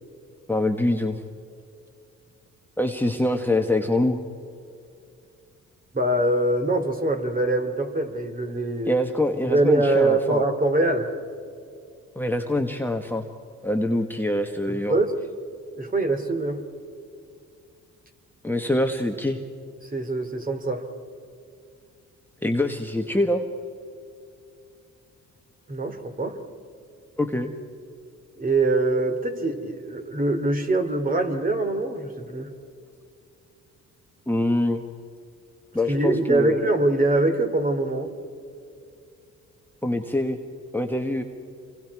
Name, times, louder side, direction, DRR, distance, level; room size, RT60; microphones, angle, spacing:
voice 1, 0.5-1.2 2.8-4.2 8.9-10.4 12.1-13.2 13.6-15.0 18.4-19.4 22.4-23.4 27.2-27.5 34.3-34.8 35.7-36.6 39.8-40.4 40.7-41.2, left 1 dB, 5° left, 3 dB, 1.4 m, -24 dB
voice 2, 5.9-8.9 9.5-11.1 14.7-15.1 15.8-16.6 19.9-20.8 25.7-26.4 28.4-32.5 35.9-38.1, right 2 dB, 30° right, 6 dB, 2.8 m, -23 dB
28.5 x 24.5 x 4.8 m, 2.5 s
cardioid pair, 90°, 30 cm